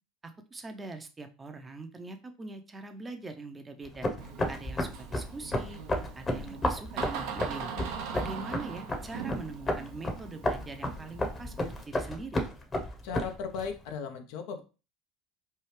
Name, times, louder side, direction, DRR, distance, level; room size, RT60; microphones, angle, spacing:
voice 1, 0.2-4.1 4.5-5.8 6.2-7.7 8.1-12.4, right 3 dB, 20° right, 7 dB, 0.6 m, -42 dB
sound 1, 3.8-13.7, left 1 dB, 25° left, 0.9 m, -33 dB
Door, 4.2-11.8, right 7 dB, 65° right, 0.5 m, -41 dB
voice 2, 13.0-14.6, left 6 dB, 65° left, 6 dB, 0.5 m, -36 dB
3.3 x 2.3 x 3.2 m, 0.32 s
hypercardioid pair, 75°, 0 cm